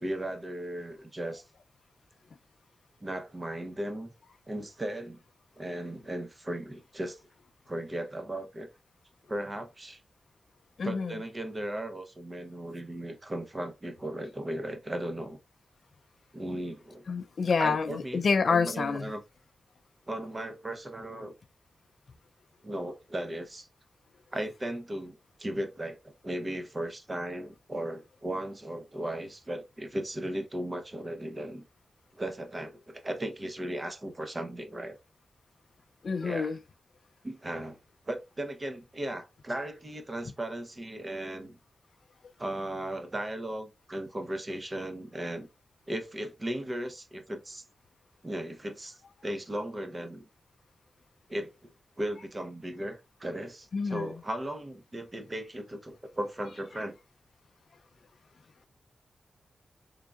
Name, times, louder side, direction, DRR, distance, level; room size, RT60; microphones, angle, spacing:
voice 1, 0.0-1.4 3.0-4.1 4.5-5.2 5.6-7.2 7.7-8.7 9.3-10.0 10.8-15.4 16.3-17.0 17.6-19.2 20.1-21.3 22.6-23.7 24.3-31.6 32.1-35.0 36.2-36.6 37.2-37.8 38.1-41.6 42.4-45.5 45.9-47.6 48.2-50.2 51.3-51.7 52.0-57.0, right 1 dB, 25° right, 0.7 m, -36 dB
voice 2, 10.8-11.1 17.1-19.1 36.0-36.6 53.7-54.1, left 5 dB, 60° left, 0.3 m, -27 dB
3.7 x 3.7 x 2.2 m
wide cardioid pair, 105°, 0 cm